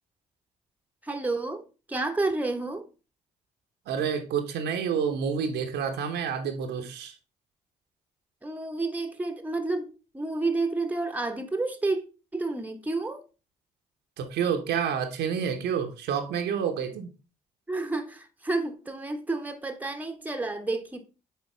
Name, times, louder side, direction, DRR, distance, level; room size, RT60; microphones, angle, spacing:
voice 1, 1.0-1.6 1.9-2.8 8.4-12.0 12.3-13.2 17.7-21.0, right 3 dB, 10° right, 1.0 m, -30 dB
voice 2, 3.9-7.1 14.2-17.1, right 7 dB, 60° right, 1.0 m, -29 dB
7.6 x 4.6 x 3.3 m
figure-of-eight pair, 40°, 20 cm